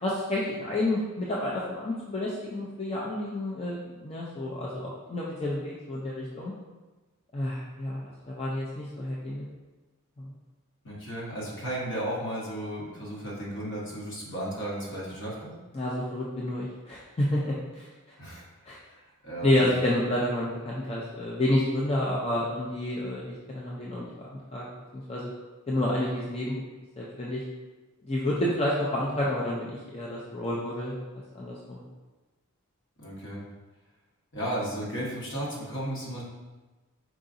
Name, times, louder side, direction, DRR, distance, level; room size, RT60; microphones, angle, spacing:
voice 1, 0.0-6.5 7.3-9.4 10.2-10.3 15.7-17.9 18.7-18.8 19.4-24.6 24.9-25.3 25.7-26.6 27.0-27.4 28.1-30.9 31.3-31.8, left 1 dB, 30° left, -5 dB, 0.5 m, -29 dB
voice 2, 10.8-15.5 18.2-18.4 18.8-19.7 33.0-33.4 34.3-36.2, right 1 dB, 60° left, -4 dB, 1.2 m, -34 dB
4.7 x 3.8 x 2.6 m, 1.2 s
head